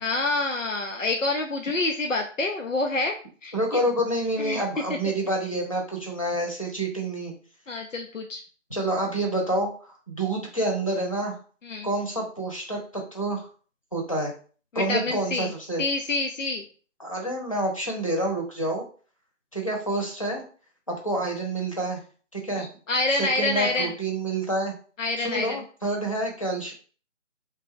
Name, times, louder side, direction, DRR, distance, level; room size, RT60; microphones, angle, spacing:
voice 1, 0.0-3.1 3.4-3.5 4.4-4.6 7.7-8.4 11.6-11.9 14.7-15.5 15.8-16.6 22.6-23.9 25.0-25.6, left 2 dB, 80° left, 3 dB, 0.8 m, -27 dB
voice 2, 3.5-7.3 8.7-11.4 11.8-13.5 13.9-14.3 14.7-15.8 17.0-18.8 19.5-20.4 20.9-22.0 22.3-22.7 23.2-24.7 25.2-26.7, right 1 dB, 25° left, -1 dB, 0.9 m, -28 dB
3.6 x 3.3 x 3.7 m, 0.41 s
figure-of-eight pair, 170°, 38 cm